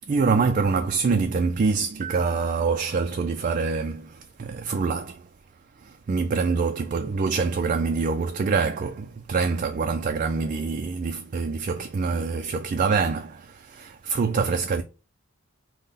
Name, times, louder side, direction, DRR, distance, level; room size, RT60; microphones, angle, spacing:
voice 1, 0.1-5.3 5.8-14.8, right 4 dB, 40° right, 0.3 m, -25 dB
5.3 x 2.1 x 4.0 m
head